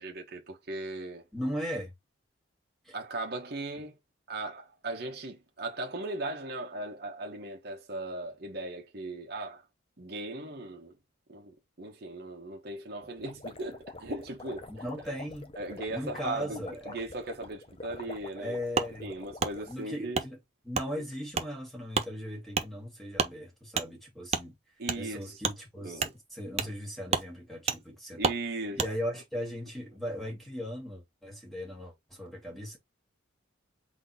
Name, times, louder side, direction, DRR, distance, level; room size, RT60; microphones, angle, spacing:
voice 1, 0.0-1.2 2.9-3.9 4.3-9.6 10.0-10.9 11.3-14.7 15.6-18.6 19.0-20.2 24.8-25.4 25.8-26.1 26.6-26.7 28.2-28.8, right 2 dB, 50° right, 1.0 m, -38 dB
voice 2, 1.3-1.9 2.8-3.0 14.7-15.5 15.9-17.0 18.4-19.1 19.7-20.4 20.6-24.6 25.0-28.3 28.7-32.8, equal, ahead, 1.9 m, -38 dB
sound 1, 13.0-19.9, left 2 dB, 30° left, 0.6 m, -46 dB
Wood, 18.7-18.9 19.4-19.5 20.1-20.3 20.7-20.9 21.3-21.5 21.9-22.1 22.5-22.7 23.1-23.3 23.7-23.9 24.3-24.4 24.8-25.0 25.4-25.6 26.0-26.1 26.6-26.7 27.1-27.3 27.7-27.8 28.2-28.4 28.8-28.9, right 5 dB, 30° right, 0.5 m, -29 dB
3.9 x 3.0 x 4.0 m
head